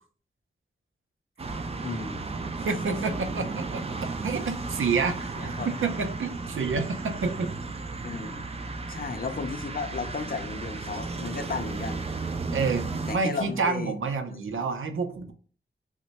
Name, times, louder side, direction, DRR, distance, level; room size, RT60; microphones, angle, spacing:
sound 1, 1.4-13.2, right 3 dB, 30° right, 0.4 m, -34 dB
voice 1, 1.8-2.3 5.4-5.8 8.0-8.6 8.9-12.0 13.1-13.9 14.5-14.6, left 4 dB, 45° left, 0.5 m, -34 dB
voice 2, 2.7-3.8 4.2-7.5 12.5-15.3, right 4 dB, 85° right, 0.6 m, -29 dB
3.0 x 2.2 x 4.0 m
wide cardioid pair, 125°, 20 cm